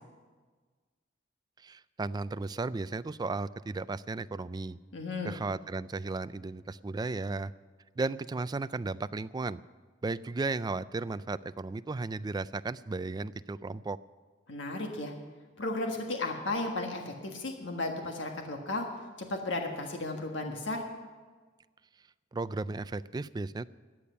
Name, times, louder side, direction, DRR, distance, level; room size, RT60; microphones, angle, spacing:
voice 1, 1.6-4.8 5.2-7.5 8.0-9.6 10.0-14.0 22.3-23.7, right 3 dB, 20° right, 15 dB, 0.3 m, -35 dB
voice 2, 4.9-5.3 14.5-15.1 15.6-18.9 19.2-20.8, left 2 dB, 70° left, 3 dB, 1.6 m, -34 dB
13.5 x 8.7 x 9.7 m, 1.4 s
head